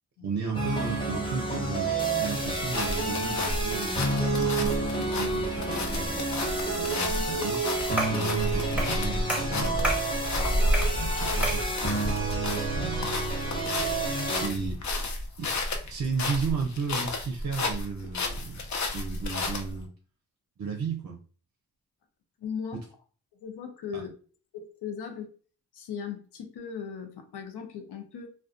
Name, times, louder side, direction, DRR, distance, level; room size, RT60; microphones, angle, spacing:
voice 1, 0.2-6.4 6.8-7.7 8.1-9.9 10.7-11.6 12.5-13.1 14.3-14.8 15.4-19.9 20.6-21.2 23.9-24.0, right 5 dB, 50° right, 1 dB, 0.5 m, -34 dB
sound 1, 0.5-14.5, right 2 dB, 15° left, 1.2 m, -29 dB
sound 2, 2.4-19.8, left 1 dB, 50° left, 0.6 m, -31 dB
sound 3, 8.0-8.3 8.8-9.0 9.3-10.1 10.7-11.0 11.4-11.7, right 1 dB, 5° right, 1.0 m, -30 dB
voice 2, 22.4-22.8 23.4-24.1 24.5-25.3 25.7-28.3, left 7 dB, 90° left, 5 dB, 0.6 m, -38 dB
2.3 x 2.3 x 2.4 m, 0.41 s
cardioid pair, 50°, 38 cm